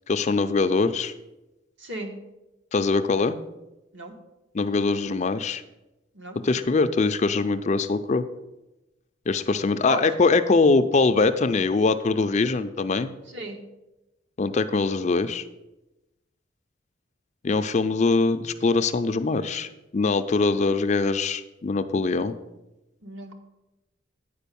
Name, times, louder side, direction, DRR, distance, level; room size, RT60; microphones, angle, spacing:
voice 1, 0.1-1.1 2.7-3.4 4.5-5.6 6.4-8.3 9.3-13.1 14.4-15.4 17.4-22.3, left 3 dB, 35° left, 10 dB, 0.4 m, -22 dB
voice 2, 1.8-2.1 3.9-4.1 6.1-6.4 9.8-10.1 13.3-13.6 23.0-23.3, right 2 dB, 65° right, 3 dB, 1.4 m, -34 dB
9.1 x 5.0 x 6.9 m, 0.99 s
head